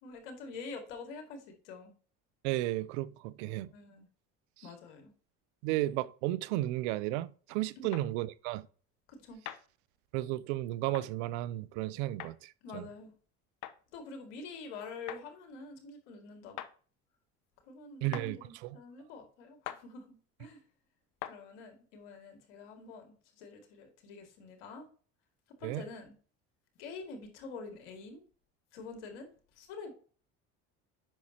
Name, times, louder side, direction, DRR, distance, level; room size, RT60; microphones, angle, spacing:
voice 1, 0.0-1.9 3.7-4.1 4.6-5.1 7.8-7.9 9.1-9.4 12.6-13.1 13.9-16.6 17.6-20.6 21.2-24.9 25.5-26.2 26.8-28.2 28.7-29.9, left 4 dB, 90° left, 2.2 m, -47 dB
voice 2, 2.4-3.7 5.6-8.7 10.1-12.9 18.0-18.4 25.6-25.8, right 16 dB, 85° right, 0.6 m, -33 dB
sound 1, 7.9-8.1 9.5-9.6 10.9-11.1 12.2-12.3 13.6-13.8 15.1-15.3 16.6-16.7 18.1-18.3 19.6-19.8 21.2-21.4, left 13 dB, 60° left, 0.9 m, -41 dB
8.9 x 6.0 x 2.8 m
supercardioid pair, 95°, 34 cm